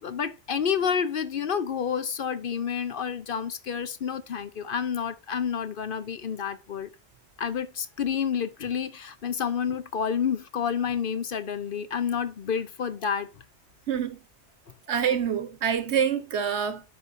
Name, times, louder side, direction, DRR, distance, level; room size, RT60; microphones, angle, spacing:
voice 1, 0.0-6.9 7.4-13.3, left 7 dB, 55° left, 0.8 m, -29 dB
voice 2, 13.9-14.2 14.9-16.8, right 8 dB, 75° right, 1.2 m, -26 dB
12.5 x 4.7 x 2.6 m
omnidirectional pair, 1.2 m